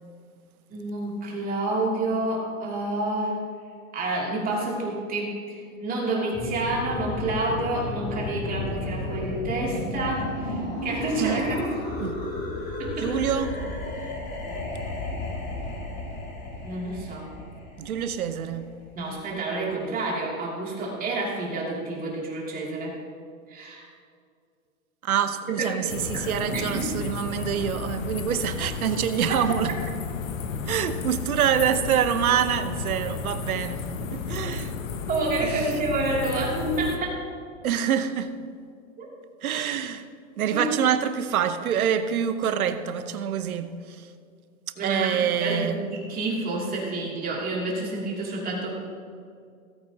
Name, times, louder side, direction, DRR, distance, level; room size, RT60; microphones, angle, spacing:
voice 1, 0.7-3.4 3.9-11.8 12.8-13.1 14.0-14.1 16.6-17.3 18.9-23.0 23.5-23.9 25.5-25.8 26.1-26.9 35.1-37.2 39.0-39.1 40.5-40.7 44.8-48.9, right 2 dB, 20° right, 2.8 m, -29 dB
sound 1, 6.3-19.0, left 2 dB, 25° left, 2.8 m, -33 dB
voice 2, 13.0-13.6 17.8-18.7 25.0-29.7 30.7-34.8 35.4-35.8 37.6-38.3 39.4-40.1 40.4-44.1 44.8-45.8, right 9 dB, 85° right, 1.0 m, -26 dB
sound 2, 25.9-37.0, left 5 dB, 65° left, 1.2 m, -33 dB
17.5 x 9.1 x 2.9 m
hypercardioid pair, 140°, 42 cm